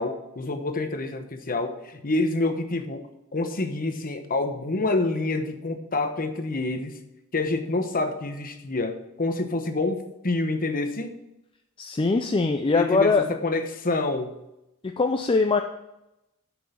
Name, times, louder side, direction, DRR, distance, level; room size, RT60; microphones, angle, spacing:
voice 1, 0.0-3.0 3.3-6.9 7.3-11.2 12.7-14.3, left 2 dB, 40° left, 7 dB, 1.0 m, -27 dB
voice 2, 11.8-13.3 14.8-15.6, left 3 dB, 25° left, 5 dB, 0.4 m, -22 dB
8.6 x 6.2 x 5.7 m, 0.89 s
head